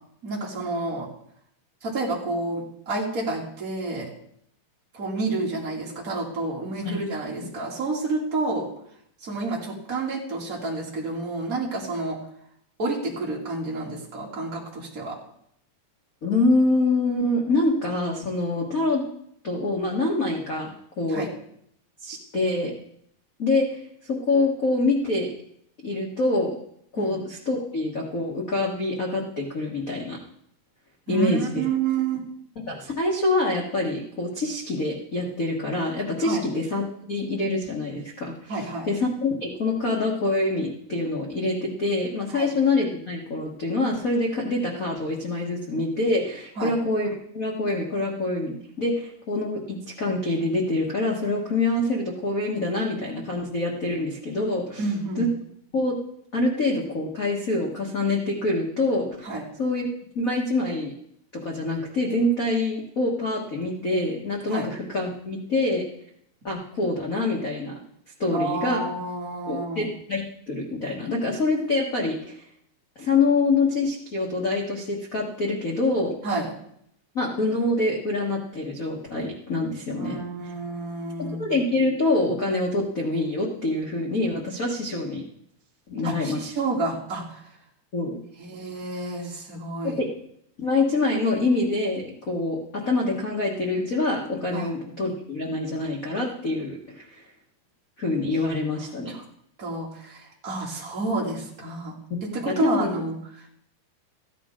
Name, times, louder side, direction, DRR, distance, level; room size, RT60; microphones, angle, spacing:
voice 1, 0.2-1.1 1.8-4.1 4.9-8.7 9.2-12.2 12.8-15.2 21.1-21.3 27.0-27.1 31.1-32.2 36.2-36.4 38.5-38.9 42.3-42.5 46.6-46.7 54.8-55.3 59.2-59.4 64.5-64.6 68.3-69.9 76.2-76.5 80.0-81.5 86.0-87.4 88.4-90.0 94.5-94.7 99.1-99.2 99.6-103.5, right 3 dB, 25° right, -4 dB, 2.8 m, -29 dB
voice 2, 16.2-19.0 19.4-21.3 22.0-22.7 23.4-25.3 25.8-26.5 26.9-30.2 31.1-31.6 32.7-54.8 55.2-55.3 55.7-56.0 56.3-59.9 60.1-60.9 61.3-65.8 66.4-67.8 68.2-68.8 69.5-72.4 73.0-76.1 77.1-80.2 81.2-85.2 85.9-86.5 87.9-88.2 89.8-90.1 90.6-97.2 98.0-99.1 102.1-102.9, left 2 dB, 80° left, -1 dB, 0.7 m, -25 dB
15.0 x 10.5 x 3.7 m, 0.70 s
omnidirectional pair, 4.0 m